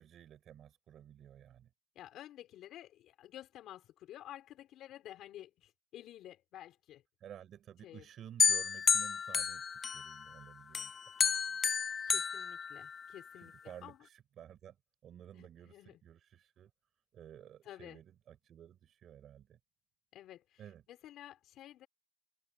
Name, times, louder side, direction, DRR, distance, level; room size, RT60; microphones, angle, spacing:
voice 1, 0.0-1.7 7.2-10.9 13.4-14.8 15.0-16.7 17.1-19.6 20.6-20.8, right 10 dB, 70° right, 6.1 m, -53 dB
voice 2, 1.9-7.0 7.8-8.1 11.3-11.6 12.1-14.0 15.3-16.0 17.6-18.0 20.1-21.9, left 12 dB, 85° left, 4.7 m, -52 dB
sound 1, 8.4-10.3 10.7-13.3, left 6 dB, 45° left, 0.3 m, -31 dB
open air
cardioid pair, 90°, 0 cm